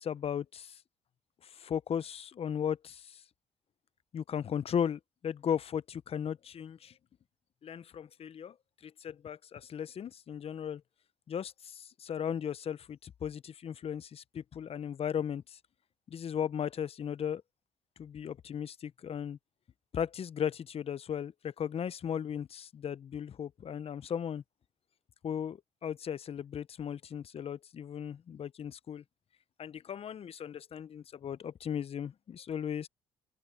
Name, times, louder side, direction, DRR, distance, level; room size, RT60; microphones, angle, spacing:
voice 1, 0.0-0.8 1.4-3.2 4.1-6.9 7.6-8.5 8.8-10.8 11.3-15.6 16.1-17.4 18.0-19.4 19.9-24.4 25.2-29.0 29.6-32.9, left 8 dB, 50° left, 0.8 m, -36 dB
open air
supercardioid pair, 65°, 13 cm